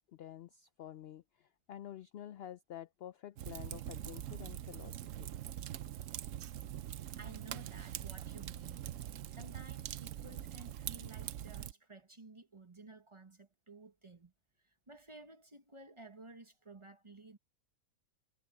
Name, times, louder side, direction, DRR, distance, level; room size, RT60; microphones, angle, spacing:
voice 1, 0.1-5.3, left 11 dB, 70° left, 0.5 m, -49 dB
Fire, 3.4-11.7, right 11 dB, 65° right, 1.0 m, -43 dB
voice 2, 7.2-8.9 9.3-14.3 14.9-17.4, right 2 dB, 20° right, 1.1 m, -54 dB
omnidirectional pair, 1.5 m